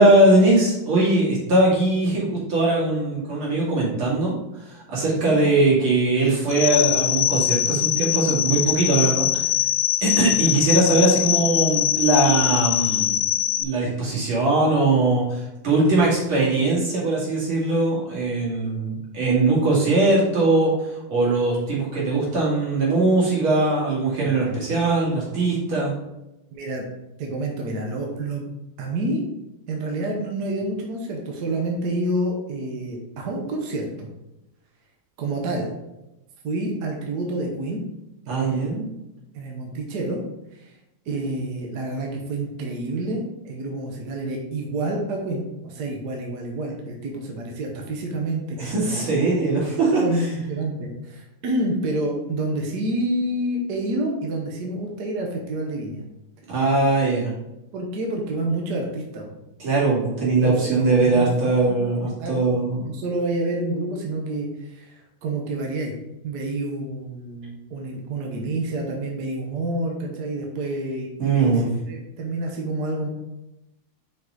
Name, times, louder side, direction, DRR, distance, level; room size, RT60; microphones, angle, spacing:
voice 1, 0.0-9.5 10.0-13.2 13.6-25.9 38.3-38.9 48.6-50.3 56.5-57.3 59.6-62.8 71.2-71.7, right 2 dB, 80° right, -6 dB, 3.1 m, -21 dB
sound 1, 6.5-13.6, left 12 dB, 85° left, 1.4 m, -22 dB
voice 2, 24.2-24.6 26.5-26.9 27.2-28.4 28.8-29.2 29.7-34.1 35.2-35.7 36.4-37.8 38.3-38.7 39.3-40.2 40.5-40.7 41.1-49.3 50.0-56.0 57.7-59.3 60.4-61.8 62.2-65.9 66.2-73.1, right 1 dB, 60° right, 0 dB, 1.4 m, -28 dB
6.1 x 4.9 x 3.9 m, 0.93 s
omnidirectional pair, 2.3 m